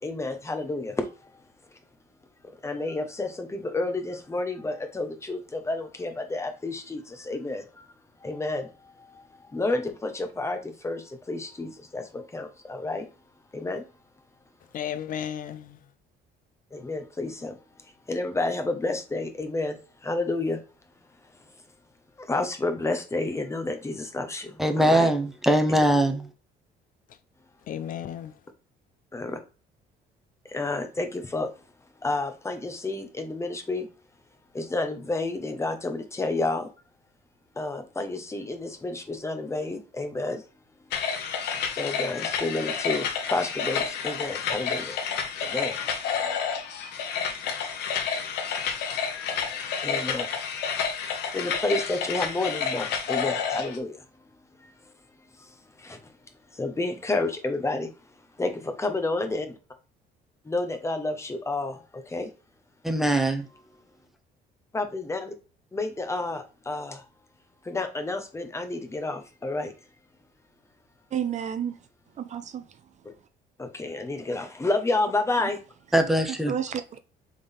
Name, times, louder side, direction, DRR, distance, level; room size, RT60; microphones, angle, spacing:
voice 1, 0.0-1.4 2.4-7.9 8.2-13.1 13.5-13.8 16.7-17.6 17.8-20.6 22.2-25.1 25.7-25.8 29.1-29.4 30.5-31.5 32.0-33.9 34.5-36.7 37.6-40.4 41.8-45.0 45.4-45.8 48.7-48.8 49.8-50.3 51.3-54.0 54.6-54.7 55.4-56.1 56.5-57.9 58.4-59.6 60.4-62.3 64.7-65.3 65.7-67.1 67.6-69.7 73.6-75.6, left 2 dB, 15° left, 1.0 m, -30 dB
voice 2, 14.7-15.8 27.7-28.4, left 9 dB, 55° left, 0.4 m, -34 dB
voice 3, 24.6-26.3 62.8-63.4 75.9-76.5, right 1 dB, ahead, 0.8 m, -22 dB
sound 1, 40.9-53.8, left 6 dB, 80° left, 1.0 m, -30 dB
voice 4, 71.1-71.8 72.2-72.6 75.4-75.5 76.5-77.0, right 8 dB, 45° right, 0.6 m, -30 dB
3.9 x 3.7 x 3.4 m
cardioid pair, 110°, 17 cm